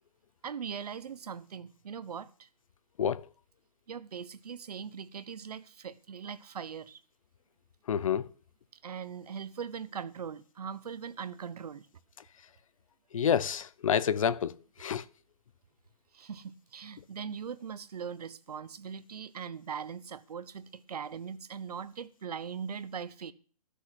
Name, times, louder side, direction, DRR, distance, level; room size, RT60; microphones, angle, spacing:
voice 1, 0.4-2.5 3.9-7.0 8.8-11.9 16.1-23.3, right 7 dB, 80° right, 0.9 m, -40 dB
voice 2, 7.9-8.3 13.1-14.5 14.8-15.0, left 8 dB, 60° left, 0.7 m, -28 dB
12.0 x 6.5 x 7.8 m
hypercardioid pair, 170°, 20 cm